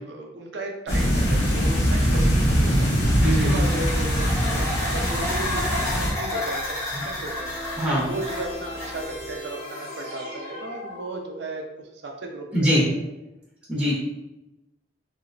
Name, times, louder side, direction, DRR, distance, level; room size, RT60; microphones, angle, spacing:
voice 1, 0.1-6.8 7.0-11.6 12.0-13.0, right 2 dB, 80° right, 1 dB, 0.5 m, -35 dB
sound 1, 0.9-6.1, equal, 80° left, 1.4 m, -22 dB
sound 2, 3.2-9.3, left 1 dB, 15° left, 0.8 m, -31 dB
voice 2, 3.2-3.6 7.8-8.1 12.5-12.8 13.7-13.9, equal, 5° right, -8 dB, 0.8 m, -22 dB
sound 3, 7.3-11.6, left 1 dB, 40° left, 0.9 m, -38 dB
3.2 x 2.9 x 2.6 m, 0.95 s
head